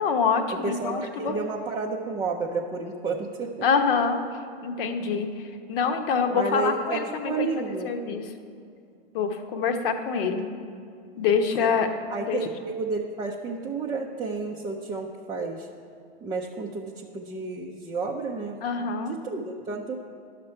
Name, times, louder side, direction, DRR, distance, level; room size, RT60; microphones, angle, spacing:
voice 1, 0.0-1.3 3.6-4.2 4.6-8.2 9.1-10.5 11.2-11.9 12.3-12.5 18.6-19.1, left 5 dB, 60° left, 6 dB, 1.0 m, -25 dB
voice 2, 0.5-3.5 6.3-7.9 11.6-11.7 12.1-15.7 16.2-18.6 19.1-19.9, right 4 dB, 15° right, -2 dB, 0.4 m, -31 dB
11.0 x 6.7 x 4.3 m, 2.4 s
hypercardioid pair, 120°, 31 cm